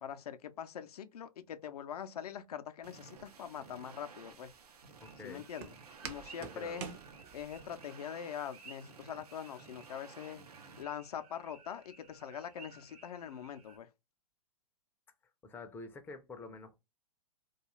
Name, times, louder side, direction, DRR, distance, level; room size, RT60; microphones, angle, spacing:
voice 1, 0.0-4.5 5.2-5.7 6.0-6.9 7.3-10.4 10.8-13.9, left 8 dB, 75° left, 0.5 m, -43 dB
sound 1, 2.8-10.8, right 5 dB, 85° right, 0.6 m, -55 dB
Walk footsteps, 3.2-7.8, right 8 dB, 45° right, 0.6 m, -49 dB
voice 2, 5.0-5.5 6.4-6.8 15.4-16.8, left 3 dB, 10° left, 0.4 m, -48 dB
sound 2, 5.0-13.8, right 4 dB, 65° right, 1.0 m, -58 dB
2.3 x 2.3 x 3.0 m
hypercardioid pair, 115°, 20 cm